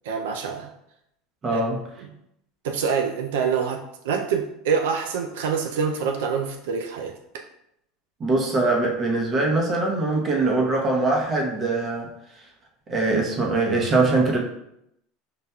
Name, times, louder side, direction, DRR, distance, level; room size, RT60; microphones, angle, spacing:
voice 1, 0.0-0.7 1.5-1.6 2.0-2.1 2.6-7.4, right 6 dB, 85° right, 4 dB, 0.3 m, -26 dB
voice 2, 1.4-1.8 8.2-12.1 12.9-14.4, right 2 dB, 30° right, 0 dB, 0.8 m, -22 dB
5.5 x 2.5 x 2.2 m, 0.80 s
supercardioid pair, 125°, 0 cm